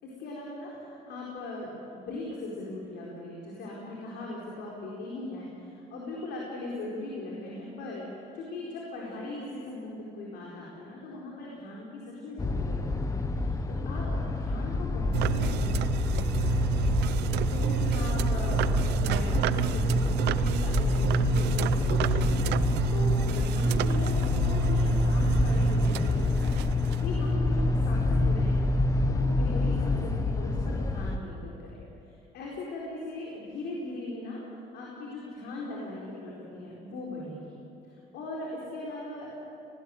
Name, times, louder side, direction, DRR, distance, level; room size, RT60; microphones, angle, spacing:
voice 1, 0.0-8.0 8.3-17.0 17.4-22.4 22.9-26.6 27.0-28.7 29.1-34.4 34.7-37.6 37.8-39.3, left 2 dB, 80° left, -3 dB, 4.7 m, -39 dB
sound 1, 12.4-31.2, left 3 dB, 20° left, 1.2 m, -27 dB
sound 2, 15.1-27.3, right 15 dB, 80° right, 0.7 m, -30 dB
19.5 x 18.5 x 9.2 m, 2.9 s
cardioid pair, 110°, 17 cm